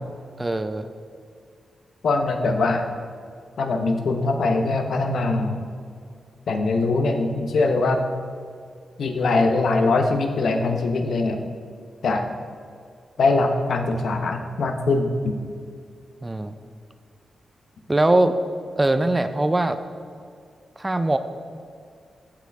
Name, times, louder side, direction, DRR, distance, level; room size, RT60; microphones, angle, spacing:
voice 1, 0.4-0.9 16.2-16.5 17.9-18.4 18.8-19.8 20.8-21.2, right 2 dB, 15° right, 10 dB, 0.3 m, -21 dB
voice 2, 2.0-2.8 3.6-5.6 6.5-8.0 9.0-11.4 12.0-12.3 13.2-15.3, left 3 dB, 65° left, 5 dB, 0.7 m, -22 dB
14.0 x 4.7 x 3.4 m, 2.2 s
wide cardioid pair, 150°, 0 cm